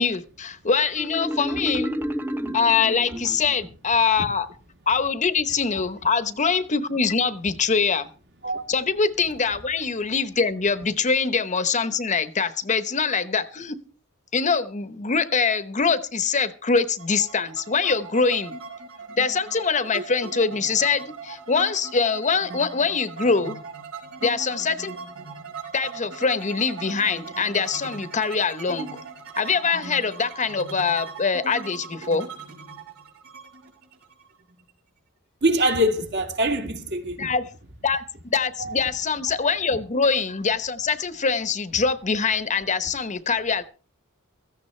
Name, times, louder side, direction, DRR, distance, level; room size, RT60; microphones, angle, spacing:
voice 1, 0.0-2.0 2.5-4.5 4.9-8.1 8.7-13.8 14.3-18.5 19.2-23.6 24.2-24.9 25.7-29.0 29.4-32.3 37.2-37.4 37.8-43.6, left 5 dB, 35° left, 0.9 m, -23 dB
Marimba xylophone, 1.0-3.7, equal, 10° right, 0.8 m, -30 dB
sound 1, 17.0-34.7, right 4 dB, 80° right, 4.7 m, -39 dB
voice 2, 35.4-37.3 38.6-38.7 39.7-39.8, equal, 55° right, 2.2 m, -24 dB
17.0 x 14.5 x 3.2 m
head